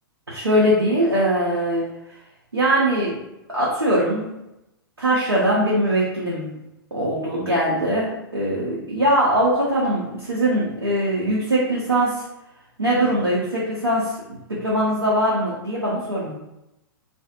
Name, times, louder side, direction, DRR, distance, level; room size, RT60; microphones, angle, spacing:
voice 1, 0.3-1.8 2.5-3.2 3.5-4.3 5.0-6.6 6.9-12.2 12.8-16.3, right 1 dB, 80° right, -7 dB, 0.8 m, -21 dB
2.5 x 2.3 x 2.8 m, 0.89 s
figure-of-eight pair, 110°, 13 cm